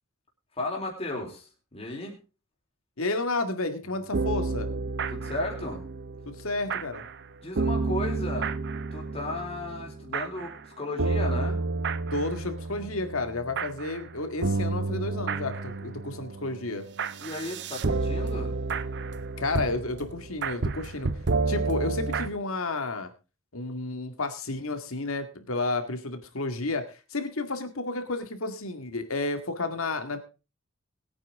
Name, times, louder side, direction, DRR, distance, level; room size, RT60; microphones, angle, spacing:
voice 1, 0.6-2.2 5.1-5.8 7.4-8.5 8.9-11.6 17.2-18.6, left 2 dB, 30° left, -1 dB, 3.9 m, -34 dB
voice 2, 3.0-4.7 6.3-7.0 12.1-16.9 19.4-21.1 21.5-23.1 23.5-30.2, left 2 dB, 75° left, 8 dB, 2.0 m, -31 dB
sound 1, 3.9-7.2 7.6-10.6 11.0-22.3, right 3 dB, 55° right, 0.8 m, -31 dB
21.0 x 9.1 x 3.7 m, 0.31 s
head